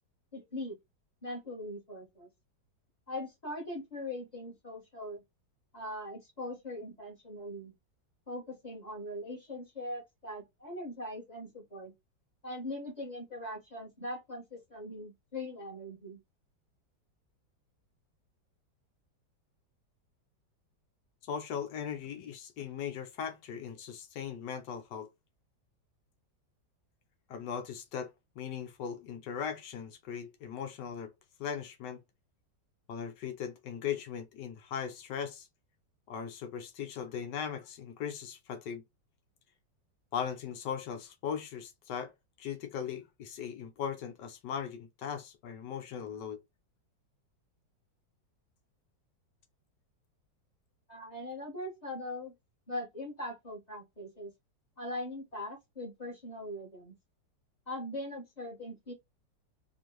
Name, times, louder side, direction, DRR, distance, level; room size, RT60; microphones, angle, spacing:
voice 1, 0.3-0.7 1.2-2.3 3.1-5.2 5.7-7.7 8.3-11.9 12.4-16.2 50.9-52.3 52.7-54.3 54.8-56.9 57.7-58.9, left 1 dB, 25° left, 1.4 m, -41 dB
voice 2, 21.2-25.1 27.3-31.1 31.4-32.0 32.9-35.5 36.1-38.8 40.1-42.1 42.4-46.4, left 8 dB, 75° left, 1.3 m, -38 dB
4.4 x 2.5 x 3.0 m
omnidirectional pair, 2.0 m